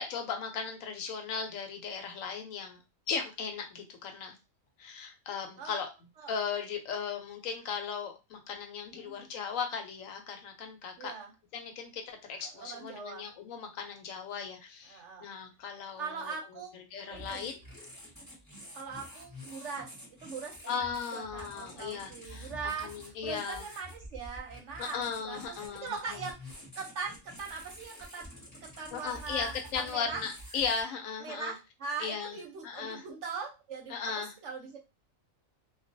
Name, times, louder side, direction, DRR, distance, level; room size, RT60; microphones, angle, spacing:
voice 1, 0.0-2.8 3.1-4.4 4.8-5.9 6.3-11.1 11.5-16.3 16.9-17.6 20.7-23.7 24.8-26.2 28.9-31.5 32.0-32.4 32.6-33.0 33.9-34.3, left 6 dB, 70° left, 5 dB, 1.0 m, -37 dB
voice 2, 11.0-11.3 12.4-13.3 14.9-15.3 16.0-16.7 17.0-17.5 18.7-30.2 31.2-34.8, right 5 dB, 65° right, 1 dB, 0.9 m, -41 dB
sound 1, 17.1-30.8, equal, 15° left, 0.8 m, -49 dB
2.3 x 2.3 x 2.5 m, 0.26 s
omnidirectional pair, 1.5 m